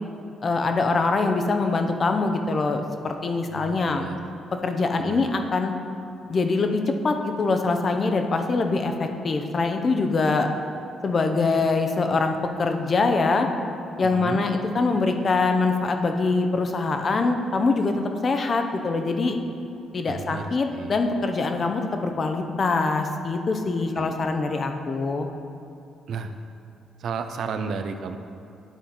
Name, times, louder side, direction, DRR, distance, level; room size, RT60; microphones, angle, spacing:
voice 1, 0.4-4.0 4.6-5.7 6.3-10.5 11.0-13.5 14.0-17.9 18.2-19.4 19.9-25.3, left 3 dB, 40° left, 5 dB, 0.6 m, -24 dB
voice 2, 3.5-4.2 4.4-4.5 5.0-5.3 14.0-14.5 20.1-21.0 24.0-24.1 26.1-26.3 27.0-28.2, right 5 dB, 65° right, 8 dB, 0.4 m, -33 dB
10.0 x 3.8 x 4.2 m, 2.6 s
cardioid pair, 90°, 0 cm